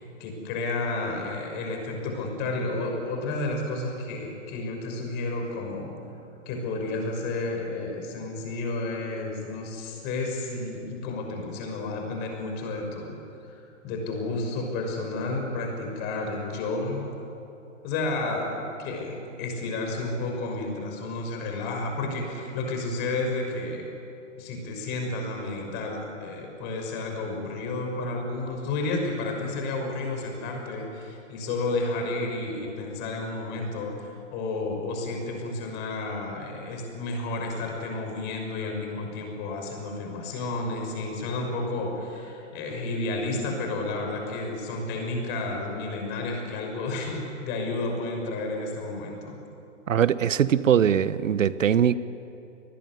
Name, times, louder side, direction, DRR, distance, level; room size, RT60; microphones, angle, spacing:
voice 1, 0.2-5.9 6.5-13.1 13.5-17.1 17.8-23.9 24.4-49.4, left 2 dB, 25° left, 2 dB, 6.1 m, -31 dB
voice 2, 49.9-51.9, right 9 dB, 85° right, 15 dB, 1.1 m, -21 dB
26.5 x 20.5 x 9.7 m, 2.8 s
hypercardioid pair, 155°, 38 cm